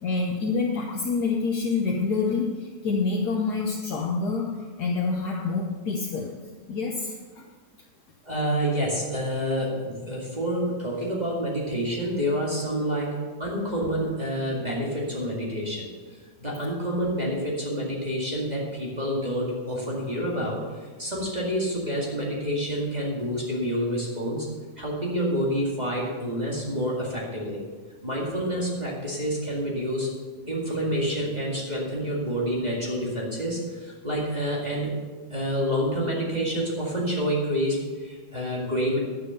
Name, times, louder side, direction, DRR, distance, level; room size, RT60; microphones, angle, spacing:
voice 1, 0.0-6.3 6.7-7.5, left 4 dB, 70° left, -1 dB, 1.6 m, -27 dB
voice 2, 8.2-15.9 16.4-24.5 24.8-27.6 28.0-30.1 30.5-34.9 35.3-39.0, equal, 25° right, -4 dB, 2.2 m, -28 dB
11.0 x 7.4 x 6.8 m, 1.4 s
omnidirectional pair, 1.8 m